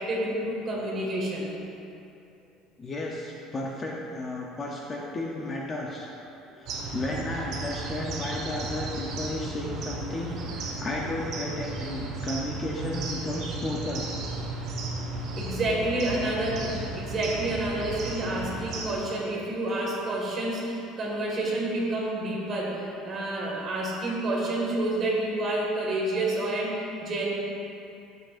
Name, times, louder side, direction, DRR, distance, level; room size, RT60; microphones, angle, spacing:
voice 1, 0.0-1.6 6.5-6.6 10.3-10.8 14.9-15.0 15.4-27.3, right 1 dB, 30° right, -4 dB, 1.8 m, -29 dB
voice 2, 2.8-6.1 6.6-14.1, left 2 dB, 20° left, -2 dB, 0.7 m, -33 dB
sound 1, 6.7-18.9, right 3 dB, 50° right, 1.3 m, -35 dB
11.5 x 7.6 x 2.5 m, 2.7 s
cardioid pair, 160°, 0 cm